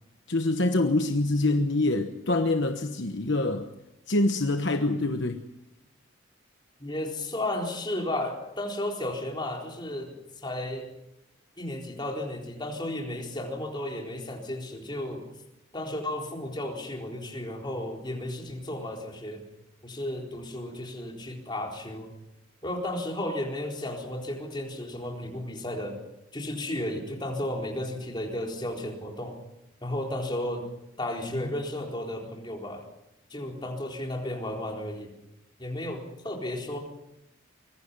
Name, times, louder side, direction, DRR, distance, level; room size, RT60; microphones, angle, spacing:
voice 1, 0.3-3.7 4.1-5.5 31.3-31.5, left 2 dB, 55° left, 6 dB, 1.2 m, -25 dB
voice 2, 6.8-10.1 10.4-10.9 11.6-15.2 15.7-19.4 19.8-22.1 22.6-26.0 26.3-29.4 29.8-30.6 31.0-32.8 33.3-35.1 35.6-36.8, left 1 dB, 20° left, 1 dB, 4.1 m, -33 dB
24.5 x 22.0 x 5.5 m, 0.87 s
head